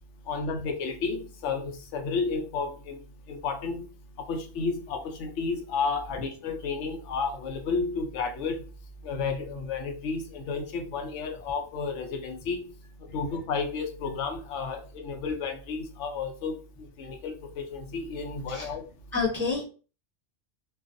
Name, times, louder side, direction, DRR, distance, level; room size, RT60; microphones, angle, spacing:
voice 1, 0.3-3.0 3.3-3.9 4.3-8.6 9.0-12.6 13.1-16.6 17.0-18.8, left 4 dB, 75° left, 5 dB, 0.9 m, -32 dB
voice 2, 19.1-19.7, left 4 dB, 20° right, -4 dB, 0.3 m, -28 dB
2.4 x 2.3 x 2.5 m, 0.35 s
omnidirectional pair, 1.2 m